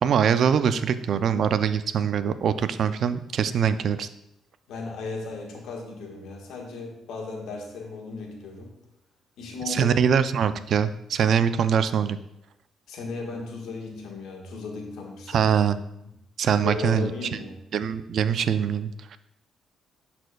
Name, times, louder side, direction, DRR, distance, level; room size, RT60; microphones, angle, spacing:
voice 1, 0.0-4.1 9.7-12.2 15.3-15.8 16.4-17.1 17.7-19.2, right 7 dB, 65° right, 12 dB, 0.4 m, -23 dB
voice 2, 4.7-8.7 9.4-10.0 10.5-10.6 12.9-15.5 16.6-17.6, left 3 dB, 85° left, 0 dB, 1.4 m, -36 dB
11.0 x 4.3 x 2.3 m, 0.83 s
cardioid pair, 90°, 0 cm